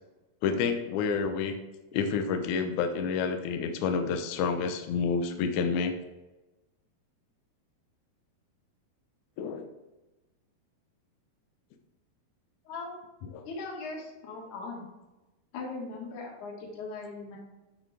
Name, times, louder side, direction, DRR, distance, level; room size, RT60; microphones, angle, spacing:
voice 1, 0.4-1.5 1.9-5.9 9.4-9.7 13.3-13.5, left 5 dB, 80° left, 6 dB, 1.7 m, -29 dB
voice 2, 13.5-14.8 15.5-17.4, left 3 dB, 55° left, -2 dB, 3.0 m, -39 dB
11.0 x 6.3 x 3.4 m, 1.1 s
omnidirectional pair, 4.6 m